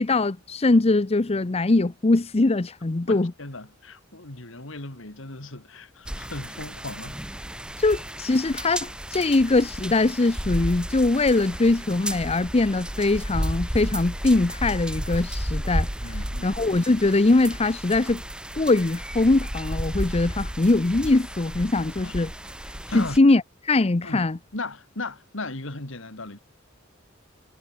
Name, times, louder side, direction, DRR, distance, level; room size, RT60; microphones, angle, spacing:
voice 1, 0.0-3.3 7.8-16.2 16.4-18.2 18.6-22.3 22.9-24.4, left 2 dB, 30° left, 0.7 m, -22 dB
voice 2, 3.1-7.2 16.0-16.6 22.0-22.2 22.9-23.2 24.0-24.2 24.5-26.4, left 2 dB, 70° left, 2.9 m, -36 dB
sound 1, 6.1-23.2, equal, 5° right, 0.9 m, -33 dB
head